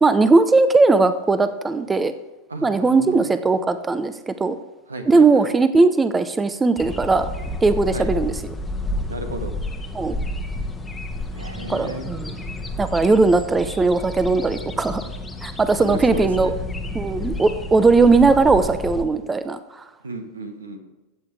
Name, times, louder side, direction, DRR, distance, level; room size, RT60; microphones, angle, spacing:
voice 1, 0.0-2.1 2.6-4.6 5.1-7.3 7.6-8.3 9.9-10.2 11.7-12.3 12.8-15.1 15.4-16.5 16.9-19.8, right 3 dB, 15° right, 12 dB, 0.5 m, -18 dB
voice 2, 2.5-3.3 4.9-5.5 7.9-8.1 9.1-9.5 11.3-12.1 15.8-16.5 20.0-20.8, right 2 dB, 75° right, 6 dB, 1.4 m, -33 dB
sound 1, 6.8-19.0, left 2 dB, 10° left, 1.1 m, -30 dB
14.5 x 8.4 x 3.4 m, 1.1 s
figure-of-eight pair, 90°, 0 cm